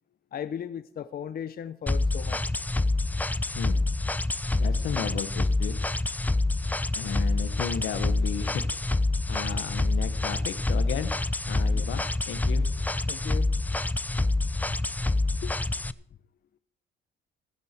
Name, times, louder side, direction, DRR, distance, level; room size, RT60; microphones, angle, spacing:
voice 1, 0.3-2.6 11.7-11.9 13.1-13.5 14.7-14.8 15.4-15.5, left 8 dB, 50° left, 12 dB, 0.6 m, -37 dB
sound 1, 1.9-15.9, left 2 dB, 10° left, 0.4 m, -27 dB
voice 2, 4.5-5.7 7.0-8.6 9.3-11.1 11.4-12.7, left 9 dB, 80° left, 11 dB, 1.2 m, -34 dB
15.0 x 10.5 x 4.4 m, 0.65 s
cardioid pair, 90°, 20 cm